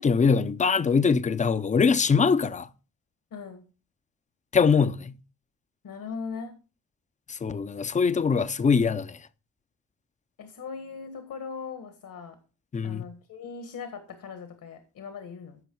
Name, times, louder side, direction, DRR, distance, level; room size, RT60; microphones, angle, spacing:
voice 1, 0.0-2.7 4.5-5.1 7.3-9.2 12.7-13.0, left 5 dB, 20° left, 0.5 m, -23 dB
voice 2, 3.3-3.6 5.8-6.6 10.4-12.4 12.8-15.6, left 5 dB, 70° left, 1.7 m, -39 dB
15.0 x 5.5 x 4.5 m
cardioid pair, 120°, 34 cm